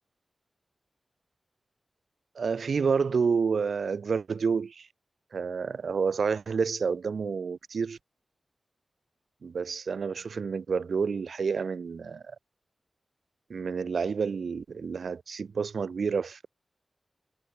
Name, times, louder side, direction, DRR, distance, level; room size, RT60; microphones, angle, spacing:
voice 1, 2.4-4.9 5.3-8.0 9.4-12.4 13.5-16.5, right 5 dB, 85° right, 0.4 m, -29 dB
wide cardioid pair, 80°, 0 cm